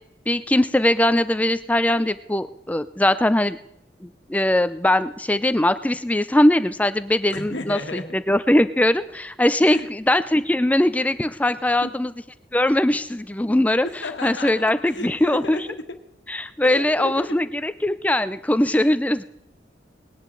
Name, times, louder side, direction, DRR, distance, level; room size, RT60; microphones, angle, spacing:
voice 1, 0.3-3.6 4.0-12.1 12.5-13.9 14.2-15.6 16.3-19.2, left 1 dB, 10° left, 13 dB, 0.4 m, -21 dB
voice 2, 7.3-8.2 9.6-9.9 11.7-11.9 13.8-16.0 16.6-17.4 18.6-19.0, left 2 dB, 80° left, 6 dB, 1.4 m, -34 dB
20.0 x 10.5 x 3.8 m, 0.83 s
head